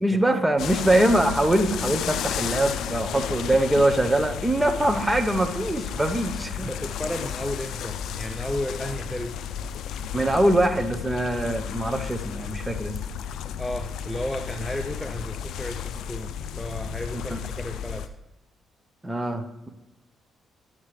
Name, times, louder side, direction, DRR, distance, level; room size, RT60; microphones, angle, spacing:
voice 1, 0.0-6.7 10.1-12.9 17.3-17.4 19.0-19.7, right 1 dB, 10° right, 5 dB, 0.9 m, -23 dB
sound 1, 0.6-18.1, left 8 dB, 75° left, 0.4 m, -33 dB
voice 2, 6.6-9.4 13.6-18.1, left 1 dB, 10° left, 6 dB, 0.5 m, -33 dB
11.5 x 7.3 x 3.2 m, 0.99 s
cardioid pair, 90°, 0 cm